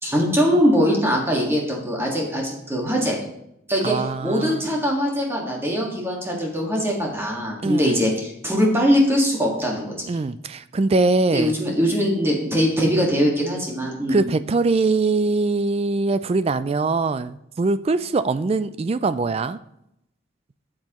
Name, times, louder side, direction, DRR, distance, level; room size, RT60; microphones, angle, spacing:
voice 1, 0.0-3.2 3.7-9.9 11.3-14.2, equal, 10° right, -2 dB, 1.7 m, -21 dB
voice 2, 3.8-4.6 7.6-8.1 10.1-11.5 14.1-19.6, right 3 dB, 30° right, 14 dB, 0.3 m, -22 dB
13.0 x 7.6 x 3.0 m, 0.80 s
head